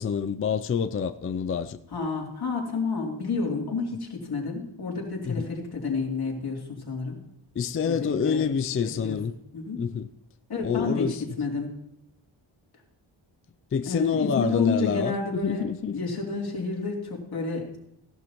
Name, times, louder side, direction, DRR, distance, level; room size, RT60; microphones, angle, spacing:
voice 1, 0.0-1.8 5.3-5.5 7.6-9.3 9.8-10.1 10.6-11.2 13.7-15.9, left 6 dB, 30° left, 0.4 m, -27 dB
voice 2, 1.9-7.2 7.8-8.4 9.0-9.2 9.5-9.8 10.5-11.7 13.8-15.6 15.9-17.8, left 4 dB, 50° left, 3.1 m, -30 dB
16.5 x 11.5 x 3.0 m
wide cardioid pair, 125°, 49 cm